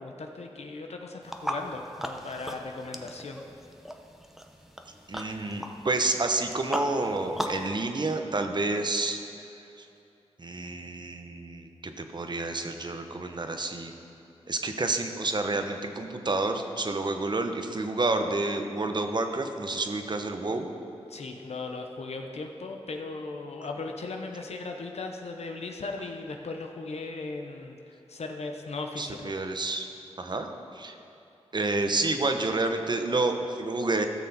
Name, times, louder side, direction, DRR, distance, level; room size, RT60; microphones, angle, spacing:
voice 1, 0.0-3.4 21.1-29.4, left 3 dB, 65° left, 3 dB, 0.8 m, -37 dB
sound 1, 1.2-7.7, equal, 5° right, 0.8 m, -38 dB
voice 2, 5.1-9.2 9.8-9.9 10.4-13.9 14.5-20.7 29.0-29.9 30.2-31.0 31.5-34.1, right 2 dB, 40° right, 6 dB, 0.9 m, -29 dB
14.5 x 6.5 x 4.2 m, 2.8 s
cardioid pair, 50°, 12 cm